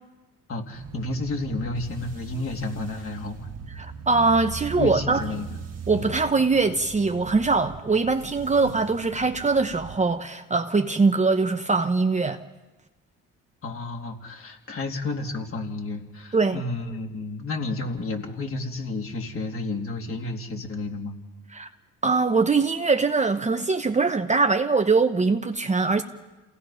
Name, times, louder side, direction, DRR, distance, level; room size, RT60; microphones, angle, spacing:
voice 1, 0.5-3.5 4.8-5.6 5.9-6.1 8.6-8.8 13.6-21.2, left 2 dB, 40° left, 3.3 m, -31 dB
sound 1, 0.7-10.0, right 6 dB, 50° right, 1.7 m, -40 dB
voice 2, 3.8-5.2 5.9-12.4 16.3-16.6 21.5-21.7 22.0-26.0, right 4 dB, 20° right, 1.0 m, -22 dB
28.5 x 17.5 x 5.7 m
supercardioid pair, 80°, 33 cm